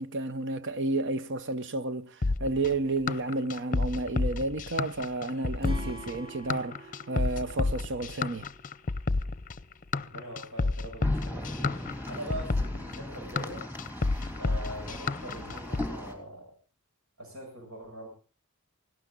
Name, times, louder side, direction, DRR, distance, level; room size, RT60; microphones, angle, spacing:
voice 1, 0.0-2.1 2.4-6.8 7.1-8.5, right 2 dB, 55° right, 0.9 m, -31 dB
sound 1, 2.2-15.9, left 3 dB, 40° left, 0.7 m, -30 dB
Acoustic guitar / Strum, 5.6-8.9, right 1 dB, 25° right, 3.0 m, -45 dB
voice 2, 10.0-11.8 12.1-13.6 14.4-16.5 17.2-18.1, right 1 dB, 75° right, 7.4 m, -42 dB
sound 2, 11.0-16.1, left 1 dB, 10° right, 3.2 m, -38 dB
18.0 x 17.0 x 4.0 m
head